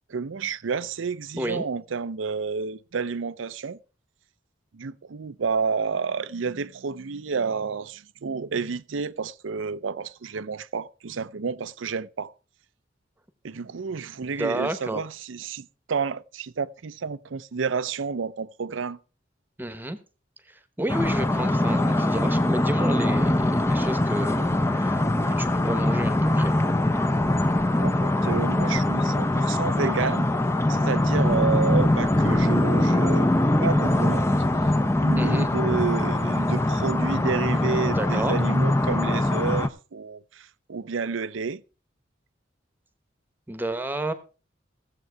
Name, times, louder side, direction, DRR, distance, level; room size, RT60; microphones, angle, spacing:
voice 1, 0.1-3.8 4.7-12.3 13.4-19.0 27.8-30.3 30.7-33.3 33.6-34.4 35.0-41.6, right 5 dB, 80° right, 0.6 m, -30 dB
voice 2, 1.3-1.6 14.4-15.0 19.6-20.0 20.5-26.5 35.2-35.5 37.9-38.4 43.5-44.1, right 1 dB, 10° right, 1.1 m, -31 dB
sound 1, 20.9-39.7, left 1 dB, 15° left, 0.6 m, -22 dB
16.0 x 7.7 x 4.6 m
head